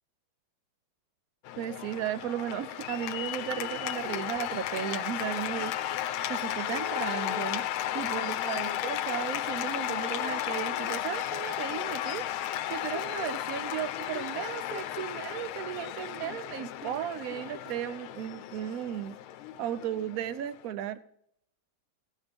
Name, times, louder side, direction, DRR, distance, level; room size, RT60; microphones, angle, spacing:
Cheering / Applause, 1.5-20.7, left 12 dB, 90° left, 1.5 m, -34 dB
voice 1, 1.6-5.7 6.3-7.6 7.9-12.2 12.7-19.2 19.6-21.0, right 10 dB, 75° right, 14 dB, 0.8 m, -35 dB
16.5 x 7.4 x 3.6 m, 0.71 s
omnidirectional pair, 2.3 m